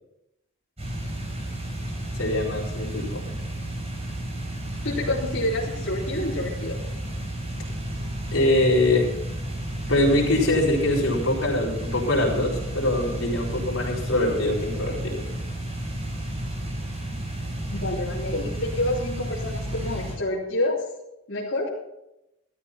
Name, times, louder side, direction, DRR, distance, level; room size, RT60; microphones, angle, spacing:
sound 1, 0.8-20.1, right 1 dB, 30° right, 4.0 m, -32 dB
voice 1, 2.2-3.2 8.3-9.1 9.9-15.2, left 1 dB, 90° left, -4 dB, 4.4 m, -23 dB
voice 2, 4.8-6.8 17.7-20.8 21.3-21.7, left 1 dB, 70° left, -7 dB, 3.4 m, -28 dB
13.0 x 13.0 x 4.3 m, 0.87 s
head